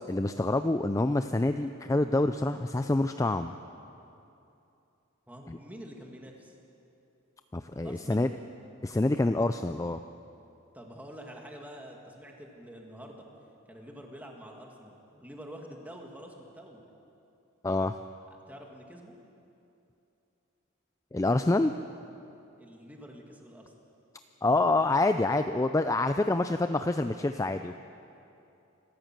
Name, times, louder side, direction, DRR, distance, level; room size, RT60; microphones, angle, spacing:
voice 1, 0.1-3.5 5.5-5.6 7.5-8.3 8.8-10.0 17.6-18.0 21.1-21.7 24.4-27.8, left 2 dB, 15° left, 9 dB, 0.4 m, -27 dB
voice 2, 5.3-6.6 7.8-8.2 10.7-13.2 13.7-16.8 18.5-19.2 22.6-23.7, equal, 10° right, 1 dB, 2.1 m, -47 dB
25.5 x 14.5 x 7.6 m, 2.8 s
head